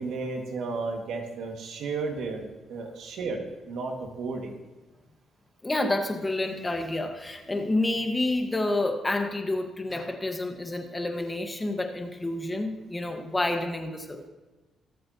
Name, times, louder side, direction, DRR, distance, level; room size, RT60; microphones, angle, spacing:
voice 1, 0.0-4.5, right 4 dB, 75° right, 2 dB, 2.0 m, -33 dB
voice 2, 5.6-14.3, left 2 dB, 15° left, 5 dB, 1.4 m, -29 dB
22.5 x 7.6 x 2.9 m, 1.2 s
cardioid pair, 90°, 0 cm